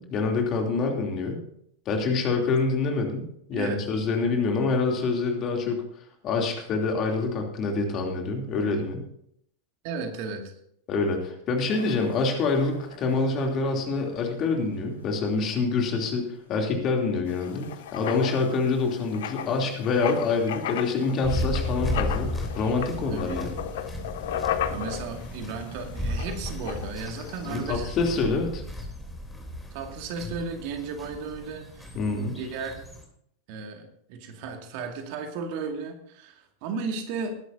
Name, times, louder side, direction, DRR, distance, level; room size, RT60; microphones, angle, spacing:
voice 1, 0.0-1.4 1.8-9.0 10.9-23.6 27.4-28.6 31.9-32.3, left 4 dB, 35° left, 2 dB, 3.0 m, -26 dB
voice 2, 3.5-3.8 9.8-10.5 23.1-23.4 24.7-28.0 29.7-32.0 32.3-32.8 33.5-37.4, right 4 dB, 45° right, 4 dB, 2.2 m, -34 dB
sound 1, 11.7-23.5, left 1 dB, 75° left, 4.9 m, -50 dB
Writing, 17.3-27.7, left 10 dB, 55° left, 1.0 m, -35 dB
sound 2, 21.2-33.0, left 1 dB, 5° left, 3.3 m, -34 dB
20.5 x 11.0 x 2.7 m, 0.70 s
figure-of-eight pair, 90°, 0 cm